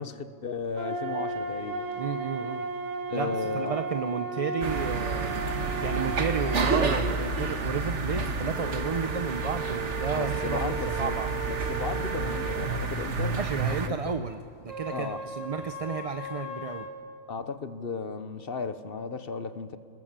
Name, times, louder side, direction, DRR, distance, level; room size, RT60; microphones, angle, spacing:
voice 1, 0.0-1.9 3.1-3.8 10.1-11.2 11.5-13.4 13.8-14.2 14.9-15.3 17.3-19.8, left 5 dB, 50° left, 11 dB, 1.1 m, -35 dB
sound 1, 0.8-6.9 8.5-12.7 14.7-16.9, right 4 dB, 90° right, 3.0 m, -35 dB
voice 2, 2.0-2.7 3.1-11.3 13.3-16.9, right 5 dB, 35° right, 7 dB, 0.7 m, -32 dB
sound 2, 4.6-13.9, right 3 dB, 65° right, 1.7 m, -30 dB
27.5 x 21.0 x 7.5 m, 2.7 s
omnidirectional pair, 1.3 m